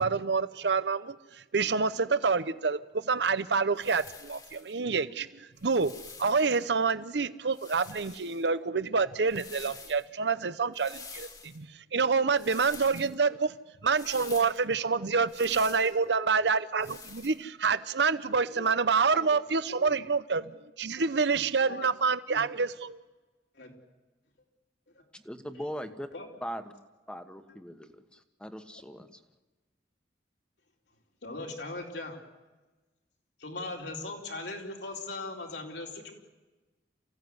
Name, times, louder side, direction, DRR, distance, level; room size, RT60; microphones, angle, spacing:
voice 1, 0.0-13.6 13.8-20.5 20.8-23.0, right 5 dB, 75° right, 14 dB, 0.8 m, -27 dB
sound 1, 3.8-4.7 5.6-6.6 7.5-8.5 9.2-10.1 10.7-11.6 12.4-13.2 13.9-14.6 15.3-16.0 16.8-17.4, left 5 dB, 20° left, 1.9 m, -47 dB
voice 2, 25.1-26.1 26.4-26.7 27.1-29.2, equal, 5° left, 8 dB, 1.3 m, -40 dB
voice 3, 31.2-32.2 33.4-36.1, left 2 dB, 80° left, 1 dB, 4.5 m, -39 dB
28.0 x 16.0 x 9.6 m, 1.2 s
head